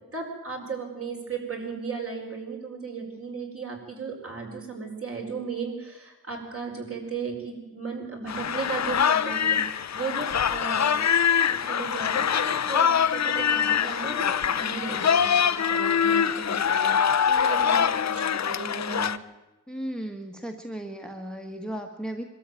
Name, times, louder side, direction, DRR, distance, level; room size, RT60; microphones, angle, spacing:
voice 1, 0.1-11.0 11.5-17.0 17.2-19.1, right 4 dB, 40° right, 1 dB, 5.1 m, -35 dB
sound 1, 8.3-19.2, left 8 dB, 55° left, 0.8 m, -24 dB
voice 2, 19.7-22.2, right 1 dB, ahead, 4 dB, 1.5 m, -35 dB
23.0 x 13.0 x 9.2 m, 1.0 s
wide cardioid pair, 140°, 33 cm